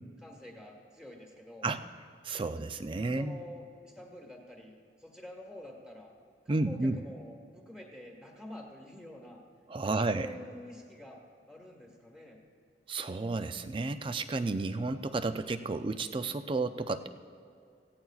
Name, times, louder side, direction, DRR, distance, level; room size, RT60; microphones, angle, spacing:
voice 1, 0.2-1.7 3.1-6.1 6.4-9.4 9.8-11.2 11.5-12.4, left 1 dB, 5° right, 0 dB, 1.5 m, -48 dB
voice 2, 2.2-3.4 6.5-7.0 9.7-10.3 12.9-17.1, right 3 dB, 30° right, 10 dB, 0.4 m, -32 dB
17.5 x 15.5 x 2.4 m, 2.3 s
head